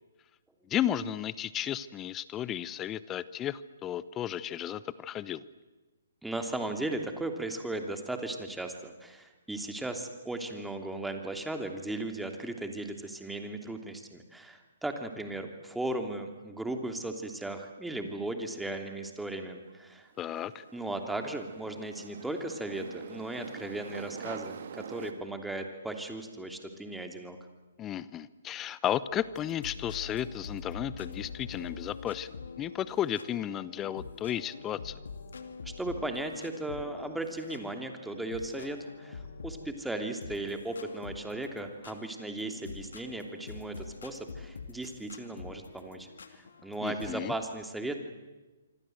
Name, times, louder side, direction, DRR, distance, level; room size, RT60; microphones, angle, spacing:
voice 1, 0.7-5.4 20.2-20.6 27.8-35.0 46.8-47.3, left 11 dB, 20° left, 17 dB, 0.9 m, -34 dB
voice 2, 6.2-20.1 20.7-27.4 35.6-48.0, right 2 dB, 5° right, 5 dB, 2.9 m, -37 dB
sound 1, 19.7-25.1, right 7 dB, 55° right, 2.3 m, -45 dB
sound 2, 29.1-39.9 40.2-47.1, left 5 dB, 70° left, 2.6 m, -45 dB
26.5 x 25.5 x 8.0 m, 1.2 s
figure-of-eight pair, 130°, 0 cm